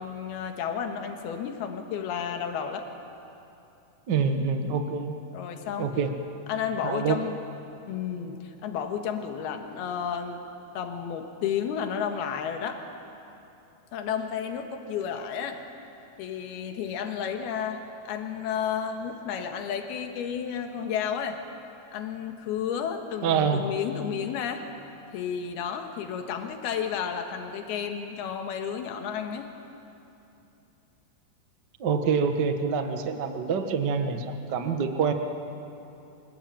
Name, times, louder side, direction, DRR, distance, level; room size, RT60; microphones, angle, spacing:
voice 1, 0.0-2.9 5.3-5.9 6.5-7.4 7.9-10.4 10.7-12.8 13.9-15.6 16.2-21.4 21.9-24.7 25.1-29.5, left 7 dB, 85° left, 5 dB, 3.4 m, -32 dB
voice 2, 4.1-5.1 5.8-6.1 6.8-7.2 23.2-23.7 31.8-35.1, right 6 dB, 65° right, 6 dB, 1.0 m, -26 dB
26.5 x 21.0 x 9.0 m, 2.8 s
omnidirectional pair, 4.4 m